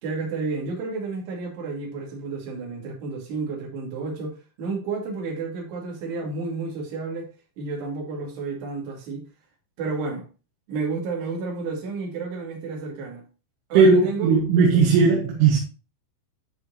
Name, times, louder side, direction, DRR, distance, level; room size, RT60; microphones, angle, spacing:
voice 1, 0.0-7.3 7.6-9.2 9.8-10.3 10.7-13.2 13.7-14.3, right 4 dB, 60° right, 4.1 m, -31 dB
voice 2, 13.8-15.6, right 5 dB, 75° right, 3.6 m, -17 dB
12.5 x 4.5 x 2.8 m
omnidirectional pair, 5.9 m